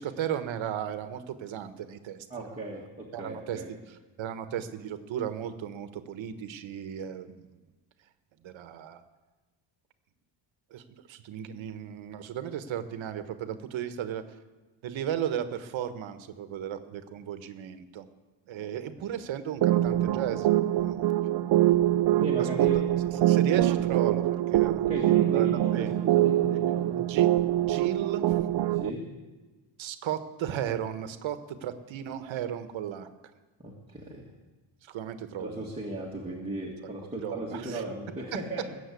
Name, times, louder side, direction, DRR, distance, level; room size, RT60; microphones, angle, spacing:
voice 1, 0.0-2.8 3.1-3.8 4.2-7.6 8.4-9.0 10.7-14.2 14.8-18.1 18.5-21.1 22.4-22.7 23.2-24.9 25.3-26.0 27.0-27.3 27.6-28.2 29.8-33.1 34.8-35.6 37.0-37.8, right 10 dB, 85° right, 10 dB, 1.3 m, -35 dB
voice 2, 2.3-3.7 19.0-19.1 22.1-22.8 23.2-23.3 24.9-27.0 28.7-29.0 33.6-34.3 35.4-38.8, right 1 dB, 15° right, -5 dB, 1.8 m, -37 dB
sound 1, 19.6-28.9, right 13 dB, 65° right, 0.5 m, -24 dB
21.5 x 7.2 x 8.4 m, 1.3 s
wide cardioid pair, 175°, 45 cm